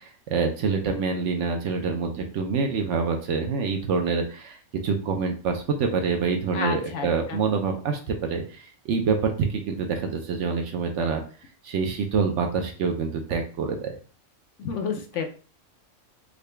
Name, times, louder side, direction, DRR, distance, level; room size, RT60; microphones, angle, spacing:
voice 1, 0.0-4.6 4.8-11.2 11.6-13.9, right 5 dB, 65° right, 4 dB, 0.9 m, -26 dB
voice 2, 6.5-7.4 14.6-15.3, left 5 dB, 70° left, 4 dB, 0.9 m, -30 dB
3.7 x 2.2 x 3.2 m, 0.39 s
omnidirectional pair, 1.4 m